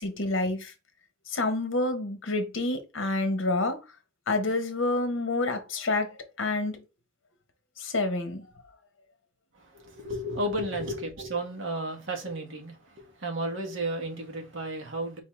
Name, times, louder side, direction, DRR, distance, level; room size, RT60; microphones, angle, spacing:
voice 1, 0.2-0.7 1.3-3.8 4.3-6.8 7.8-8.5, left 2 dB, 60° left, 0.9 m, -28 dB
voice 2, 9.5-15.2, right 1 dB, 65° right, 1.4 m, -33 dB
4.0 x 3.7 x 3.2 m
head